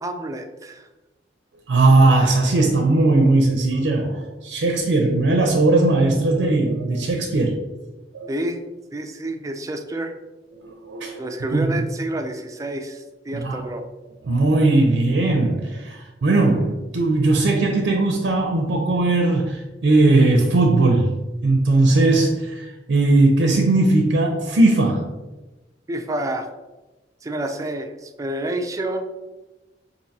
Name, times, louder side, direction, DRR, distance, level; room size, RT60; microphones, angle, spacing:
voice 1, 0.0-0.9 8.3-8.6 8.9-10.1 11.2-13.8 25.9-26.5 27.2-29.1, right 1 dB, 20° right, 5 dB, 0.3 m, -28 dB
voice 2, 1.7-7.6 8.1-8.3 10.6-11.7 13.3-13.6 14.3-25.1, right 2 dB, 85° right, 2 dB, 0.5 m, -18 dB
5.1 x 2.6 x 2.7 m, 1.1 s
head